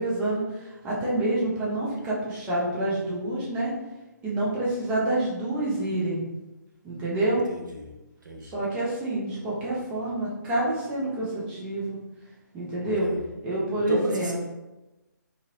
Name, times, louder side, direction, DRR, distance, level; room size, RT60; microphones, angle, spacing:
voice 1, 0.0-3.7 4.2-6.2 6.8-7.4 8.4-12.0 12.5-13.1 13.4-14.4, right 1 dB, 10° right, -7 dB, 0.6 m, -27 dB
voice 2, 7.3-7.9 8.2-8.5 12.8-13.2 13.7-14.4, equal, 70° right, 1 dB, 0.6 m, -34 dB
2.7 x 2.6 x 2.8 m, 1.0 s
figure-of-eight pair, 140°, 10 cm